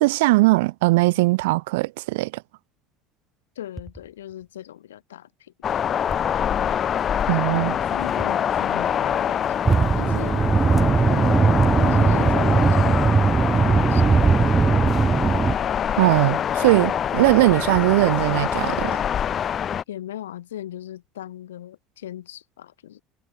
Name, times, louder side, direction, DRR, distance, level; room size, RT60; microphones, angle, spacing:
voice 1, 0.0-2.4 7.3-7.8 16.0-19.0, right 21 dB, 75° right, 0.3 m, -20 dB
voice 2, 3.6-5.8 7.8-10.5 10.8-11.4 11.7-14.1 19.9-23.0, left 12 dB, 85° left, 2.2 m, -38 dB
sound 1, 3.8-4.5 6.1-6.7 8.2-8.8 11.3-11.9 14.1-15.5 17.7-18.6, equal, ahead, 3.2 m, -42 dB
sound 2, 5.6-19.8, left 9 dB, 40° left, 1.1 m, -25 dB
sound 3, 9.7-15.6, right 5 dB, 25° right, 1.1 m, -19 dB
hypercardioid pair, 70°, 0 cm